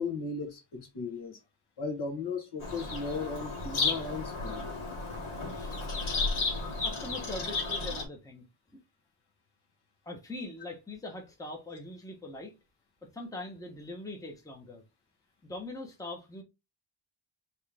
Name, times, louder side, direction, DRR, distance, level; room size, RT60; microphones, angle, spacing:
voice 1, 0.0-1.4 1.8-4.6, left 4 dB, 55° left, 1.6 m, -36 dB
Bird vocalization bird call bird song, 2.6-8.0, left 3 dB, 80° left, 1.9 m, -33 dB
voice 2, 5.4-5.8 6.8-8.8 10.0-12.5 13.0-14.8 15.4-16.4, left 2 dB, 5° left, 1.0 m, -42 dB
4.5 x 3.2 x 3.5 m
wide cardioid pair, 130°, 49 cm